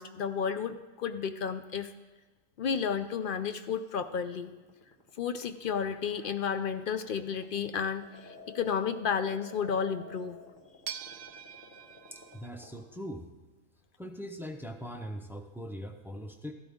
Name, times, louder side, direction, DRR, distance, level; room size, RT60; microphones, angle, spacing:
voice 1, 0.0-1.9 2.6-4.5 5.2-10.4, left 6 dB, 60° left, 10 dB, 0.6 m, -32 dB
sound 1, 3.9-12.8, left 1 dB, 40° left, 1.7 m, -50 dB
sound 2, 5.6-7.2 10.0-10.1 10.9-12.5, right 9 dB, 75° right, 0.9 m, -44 dB
voice 2, 12.1-13.3 14.0-16.5, equal, ahead, 4 dB, 0.5 m, -41 dB
14.0 x 12.5 x 3.6 m, 1.3 s
omnidirectional pair, 1.4 m